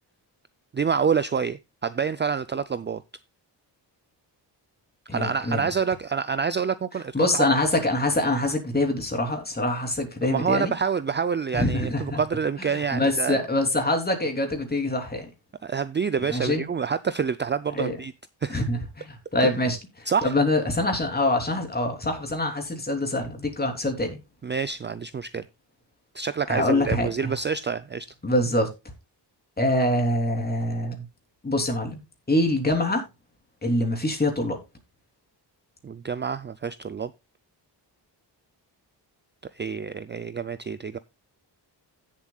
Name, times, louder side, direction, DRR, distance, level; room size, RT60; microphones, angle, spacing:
voice 1, 0.7-3.0 5.1-7.5 10.2-13.4 15.6-18.1 18.4-18.6 19.4-19.5 20.1-20.3 24.4-25.4 26.1-28.1 35.8-37.1 39.5-41.0, right 6 dB, 25° right, 0.5 m, -27 dB
voice 2, 5.1-5.7 7.1-10.7 11.5-12.2 12.7-15.3 16.3-16.6 17.7-18.0 18.5-24.2 26.5-27.3 28.2-28.7 29.6-31.1 31.4-33.0 33.6-34.6, left 1 dB, 20° left, 3.2 m, -25 dB
16.0 x 7.5 x 2.3 m
wide cardioid pair, 125°, 42 cm